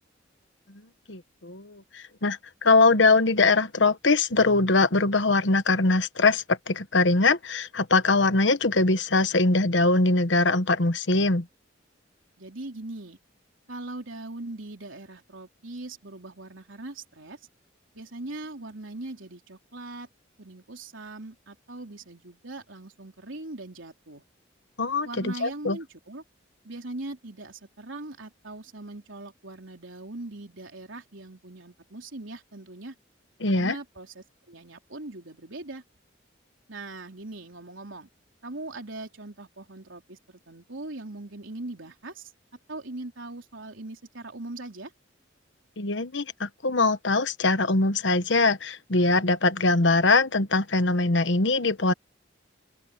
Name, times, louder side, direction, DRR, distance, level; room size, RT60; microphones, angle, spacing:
voice 1, 1.1-11.5 24.8-25.8 33.4-33.7 45.8-51.9, left 3 dB, 70° left, 1.2 m, -22 dB
voice 2, 12.4-13.2 13.7-17.5 17.9-20.1 20.4-24.2 25.0-26.2 26.6-33.0 33.5-35.8 36.7-38.1 38.4-42.3 42.7-44.9, right 2 dB, 85° right, 3.6 m, -40 dB
open air
head